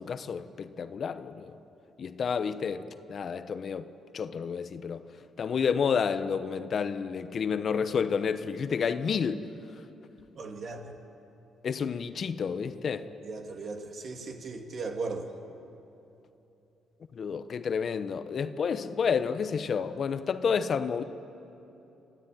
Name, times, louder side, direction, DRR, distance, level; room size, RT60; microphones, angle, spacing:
voice 1, 0.0-1.5 2.0-3.9 4.1-5.0 5.4-9.5 11.6-13.1 17.1-21.0, left 6 dB, 50° left, 11 dB, 0.9 m, -30 dB
voice 2, 10.4-10.9 13.2-15.3, right 3 dB, 55° right, 4 dB, 2.3 m, -37 dB
25.5 x 13.5 x 9.1 m, 3.0 s
cardioid pair, 90°, 0 cm